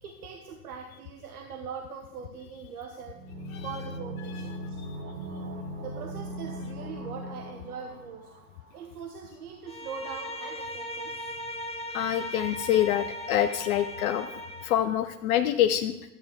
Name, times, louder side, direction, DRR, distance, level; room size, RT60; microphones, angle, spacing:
voice 1, 0.0-3.2 3.6-4.8 5.8-8.3 8.7-11.3, right 6 dB, 65° right, 4 dB, 1.0 m, -41 dB
sound 1, 3.1-8.8 9.1-9.2, equal, 35° right, 1.9 m, -39 dB
Bowed string instrument, 9.6-14.8, equal, 15° left, 0.8 m, -38 dB
voice 2, 11.9-14.3 14.6-15.9, left 11 dB, 60° left, 9 dB, 0.6 m, -26 dB
12.0 x 8.2 x 3.5 m, 0.96 s
figure-of-eight pair, 85°, 48 cm